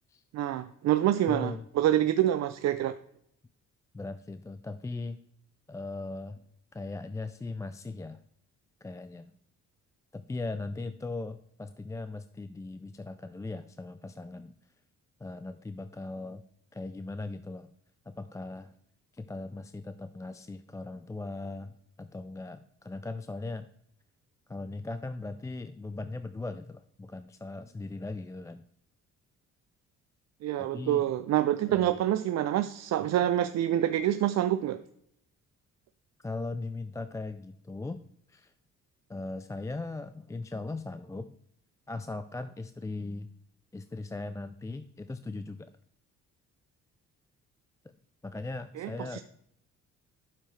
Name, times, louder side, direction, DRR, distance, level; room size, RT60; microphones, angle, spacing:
voice 1, 0.3-3.0 30.4-34.8 48.8-49.2, right 12 dB, 60° right, 0.5 m, -27 dB
voice 2, 1.3-1.7 3.9-5.2 5.7-6.4 6.7-8.2 8.8-9.3 10.1-14.5 15.2-16.4 16.7-17.7 18.1-18.7 19.1-23.7 24.5-28.6 30.6-31.1 31.7-31.9 36.2-38.0 38.3-38.5 39.1-41.4 41.9-43.3 43.7-45.7 48.2-49.2, left 3 dB, 10° left, 0.3 m, -39 dB
9.1 x 6.7 x 3.2 m
cardioid pair, 90°, 30 cm